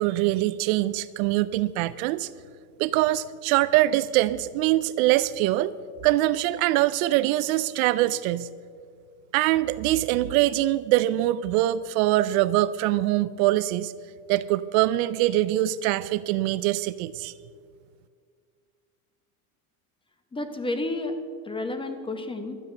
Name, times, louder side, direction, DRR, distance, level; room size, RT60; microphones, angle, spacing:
voice 1, 0.0-2.3 2.8-5.7 6.0-8.5 9.3-13.9 14.3-17.3, right 15 dB, 65° right, 17 dB, 0.5 m, -23 dB
voice 2, 20.3-21.2 21.4-22.6, left 2 dB, 10° left, 7 dB, 1.0 m, -31 dB
12.5 x 8.7 x 6.7 m, 2.1 s
supercardioid pair, 125°, 46 cm